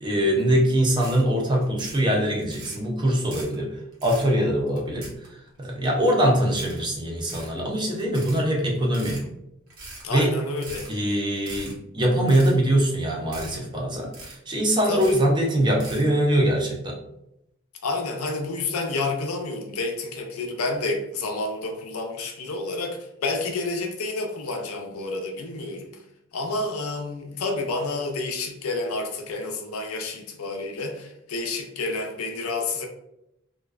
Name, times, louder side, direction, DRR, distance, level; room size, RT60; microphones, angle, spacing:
voice 1, 0.0-5.1 5.6-9.2 10.1-10.3 10.9-17.0, right 1 dB, 20° right, 0 dB, 0.4 m, -23 dB
sound 1, 1.0-1.2 1.5-2.0 2.4-2.8 3.1-3.6 3.9-4.3 4.7-5.5 5.8-5.9 6.5-6.8 7.2-7.5 7.9-8.4 8.8-9.2 9.7-10.0 10.5-10.9 11.3-11.7 12.1-12.6 12.9-13.0 13.3-13.6 13.9-14.5 14.9-15.3 15.6-16.1, right 2 dB, 75° right, 0.8 m, -41 dB
voice 2, 10.0-10.9 14.9-15.0 17.8-26.0 26.3-32.9, left 3 dB, 90° left, 3 dB, 0.5 m, -29 dB
2.4 x 2.1 x 2.3 m, 0.84 s
head